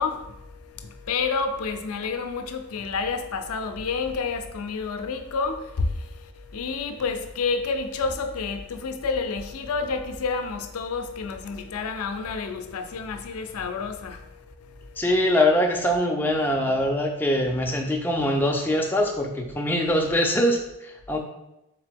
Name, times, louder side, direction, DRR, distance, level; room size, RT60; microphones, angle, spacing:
voice 1, 0.0-15.1, left 4 dB, 75° left, 0.4 m, -29 dB
voice 2, 15.0-21.2, left 1 dB, 10° left, 0.3 m, -23 dB
3.6 x 3.5 x 3.4 m
head